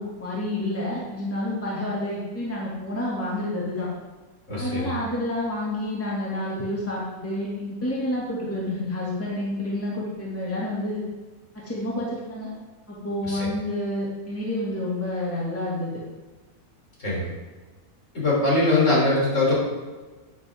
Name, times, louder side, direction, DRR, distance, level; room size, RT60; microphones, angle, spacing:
voice 1, 0.0-3.9 4.6-11.0 11.6-12.5 12.9-15.9, left 1 dB, 10° left, -6 dB, 2.3 m, -29 dB
voice 2, 4.5-5.0 13.2-13.5 17.0-17.3 18.1-19.5, left 2 dB, 50° left, -5 dB, 4.2 m, -22 dB
10.5 x 10.5 x 3.7 m, 1.3 s
omnidirectional pair, 1.7 m